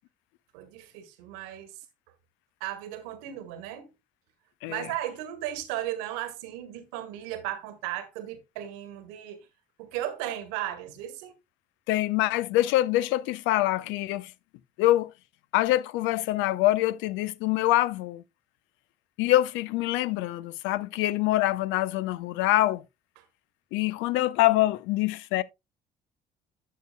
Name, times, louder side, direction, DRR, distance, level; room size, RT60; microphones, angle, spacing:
voice 1, 0.5-1.7 2.6-3.9 4.7-9.5 9.8-11.4 23.2-23.3, right 12 dB, 75° right, 1.4 m, -36 dB
voice 2, 11.9-14.3 14.8-15.1 15.5-18.2 19.2-22.8 23.7-25.4, left 16 dB, 70° left, 0.6 m, -25 dB
12.0 x 6.6 x 2.2 m
hypercardioid pair, 55°, 21 cm